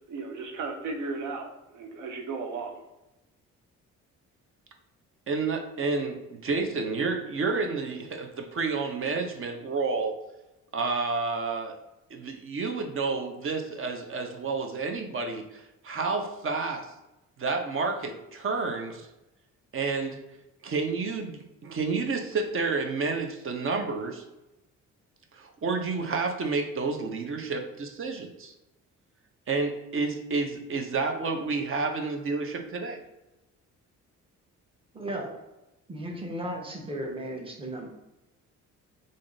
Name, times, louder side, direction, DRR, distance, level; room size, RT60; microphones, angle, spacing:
voice 1, 0.1-2.8, right 4 dB, 80° right, 3 dB, 0.7 m, -35 dB
voice 2, 5.3-10.1 10.7-11.8 12.1-16.9 17.4-19.1 19.7-20.2 20.6-24.2 25.3-28.5 29.5-33.0, right 4 dB, 45° right, 5 dB, 0.7 m, -30 dB
voice 3, 34.9-35.4 35.9-37.9, right 1 dB, 20° right, 1 dB, 0.9 m, -35 dB
3.6 x 2.6 x 3.9 m, 0.96 s
cardioid pair, 90°, 30 cm